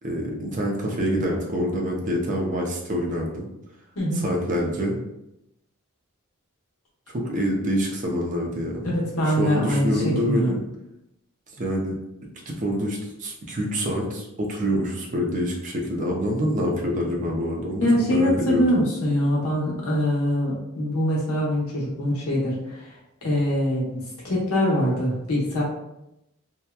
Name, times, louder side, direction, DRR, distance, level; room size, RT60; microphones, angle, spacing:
voice 1, 0.0-3.5 4.2-5.0 7.1-9.0 9.3-10.6 11.6-11.9 12.5-18.6, equal, 35° right, -1 dB, 0.5 m, -26 dB
voice 2, 8.8-10.5 17.8-22.9 23.2-24.0 24.2-25.6, equal, 70° left, -4 dB, 0.9 m, -23 dB
2.8 x 2.1 x 2.2 m, 0.85 s
head